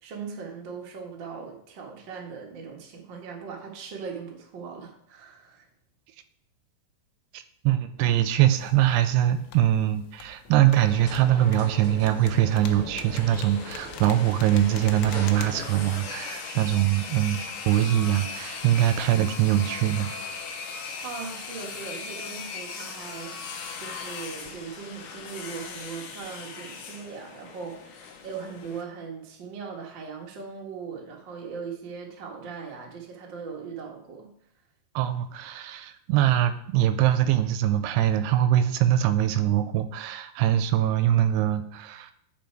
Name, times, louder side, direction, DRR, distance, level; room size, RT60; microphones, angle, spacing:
voice 1, 0.0-5.7 21.0-23.4 23.8-34.3, right 5 dB, 70° right, -1 dB, 1.1 m, -39 dB
voice 2, 7.3-20.1 35.0-42.1, right 12 dB, 85° right, 10 dB, 2.6 m, -23 dB
sound 1, 8.5-15.5, left 7 dB, 90° left, 2.9 m, -46 dB
sound 2, 10.7-15.9, equal, 15° right, 2.3 m, -40 dB
sound 3, 12.9-28.8, left 5 dB, 70° left, 1.9 m, -39 dB
9.2 x 5.5 x 4.6 m, 0.71 s
omnidirectional pair, 4.8 m